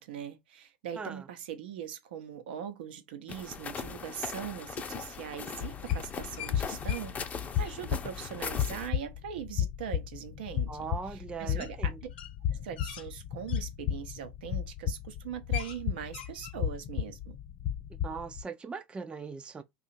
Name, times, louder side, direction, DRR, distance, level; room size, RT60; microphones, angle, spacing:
voice 1, 0.0-10.8 11.1-12.1 12.5-17.4, right 9 dB, 80° right, 0.7 m, -41 dB
voice 2, 0.9-1.3 10.7-12.0 17.9-19.6, right 5 dB, 20° right, 0.4 m, -40 dB
sound 1, 3.3-8.9, left 6 dB, 30° left, 0.6 m, -40 dB
sound 2, 5.6-18.4, left 10 dB, 55° left, 0.9 m, -34 dB
sound 3, 5.9-6.5 6.9-7.0 7.3-7.8 10.0-10.1 11.6-11.7 12.1-13.6 14.3-14.6 14.9-15.0 15.3-16.6, left 10 dB, 80° left, 0.7 m, -43 dB
2.8 x 2.4 x 4.2 m
hypercardioid pair, 90°, 5 cm